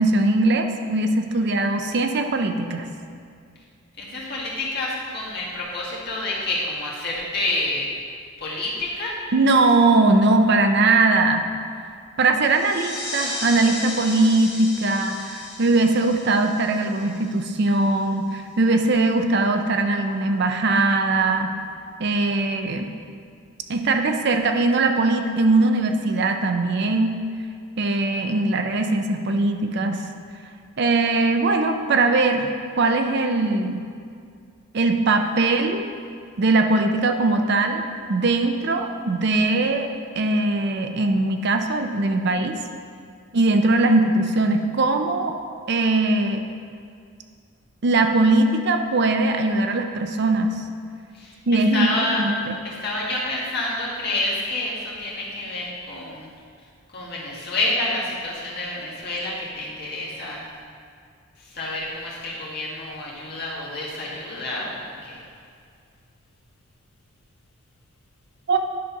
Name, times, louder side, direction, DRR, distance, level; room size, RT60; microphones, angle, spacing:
voice 1, 0.0-2.9 9.3-11.5 12.2-21.5 22.0-22.9 23.7-27.2 27.8-30.1 30.8-33.8 34.7-35.9 36.4-37.8 38.1-39.9 40.2-42.6 43.3-45.4 45.7-46.4 47.8-50.6 51.5-51.9 52.2-52.6 68.5-68.6, right 2 dB, 50° right, 5 dB, 0.5 m, -20 dB
voice 2, 4.0-7.9 8.4-9.2 51.1-51.4 51.7-52.2 52.6-56.3 56.9-60.4 61.5-65.2, left 2 dB, 45° left, -5 dB, 1.8 m, -28 dB
sound 1, 12.4-17.7, left 2 dB, 25° left, 2.1 m, -35 dB
10.5 x 4.0 x 5.8 m, 2.2 s
head